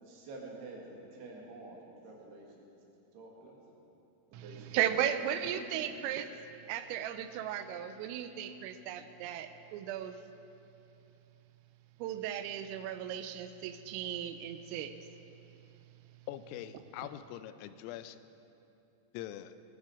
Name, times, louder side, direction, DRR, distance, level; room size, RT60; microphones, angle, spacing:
voice 1, 0.0-2.7 3.1-3.8 4.3-5.0 5.4-5.9, right 2 dB, 60° right, -1 dB, 3.4 m, -49 dB
voice 2, 4.7-6.3 6.7-10.2 12.0-15.0, right 10 dB, 85° right, 10 dB, 3.3 m, -35 dB
voice 3, 16.3-18.2 19.1-19.5, left 12 dB, 85° left, 12 dB, 3.3 m, -43 dB
21.0 x 12.5 x 4.8 m, 2.8 s
omnidirectional pair, 5.9 m